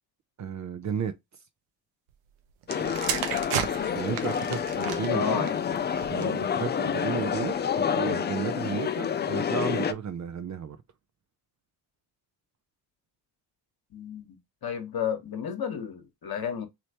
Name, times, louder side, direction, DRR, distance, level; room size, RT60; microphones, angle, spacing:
voice 1, 0.4-1.1 3.9-5.5 6.1-10.8, right 7 dB, 35° right, 0.6 m, -33 dB
sound 1, 2.6-6.5 7.2-7.5, right 9 dB, 80° right, 0.7 m, -34 dB
sound 2, 2.7-9.9, left 7 dB, 25° left, 0.3 m, -28 dB
voice 2, 5.1-5.5 13.9-16.7, left 7 dB, 45° left, 1.2 m, -32 dB
3.1 x 2.9 x 2.8 m
supercardioid pair, 55°, 49 cm